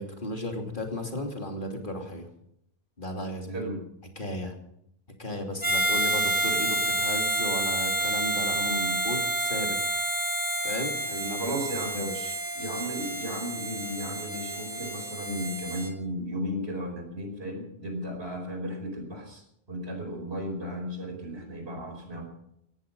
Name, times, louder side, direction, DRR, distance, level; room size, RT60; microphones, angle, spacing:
voice 1, 0.0-2.3 3.0-3.7 4.2-4.5 5.2-9.8 10.6-11.4 11.9-12.4, left 1 dB, 55° left, 3 dB, 3.1 m, -35 dB
voice 2, 3.5-3.8 8.5-9.0 11.4-12.1 12.5-22.3, equal, 90° right, 3 dB, 5.2 m, -35 dB
Harmonica, 5.6-15.9, right 1 dB, 20° left, 3.1 m, -29 dB
17.5 x 14.5 x 5.4 m, 0.75 s
omnidirectional pair, 1.0 m